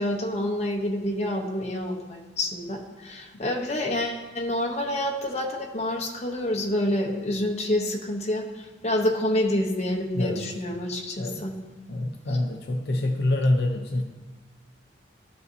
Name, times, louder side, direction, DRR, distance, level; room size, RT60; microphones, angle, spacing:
voice 1, 0.0-11.5 12.3-12.4, left 1 dB, 35° left, 2 dB, 0.8 m, -28 dB
voice 2, 10.1-10.4 11.2-11.4 11.9-14.0, left 1 dB, 60° left, 1 dB, 0.6 m, -26 dB
12.5 x 5.5 x 2.7 m, 1.3 s
head